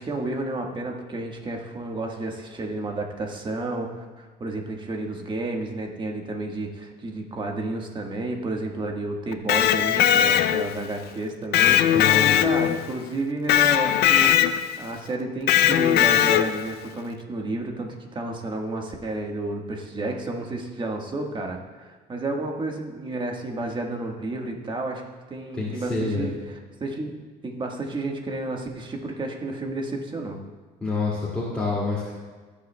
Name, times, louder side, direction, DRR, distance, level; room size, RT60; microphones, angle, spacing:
voice 1, 0.0-12.0 12.2-14.3 14.8-25.0 25.3-30.4, right 2 dB, 30° right, 2 dB, 1.4 m, -31 dB
Electric guitar, 9.3-10.8 11.5-12.9 13.5-14.8 15.5-16.7, left 11 dB, 70° left, 0.5 m, -19 dB
voice 2, 11.6-12.5 25.5-26.3 30.8-32.1, left 3 dB, 10° left, -8 dB, 2.1 m, -28 dB
17.0 x 7.1 x 2.2 m, 1.4 s
cardioid pair, 110°, 17 cm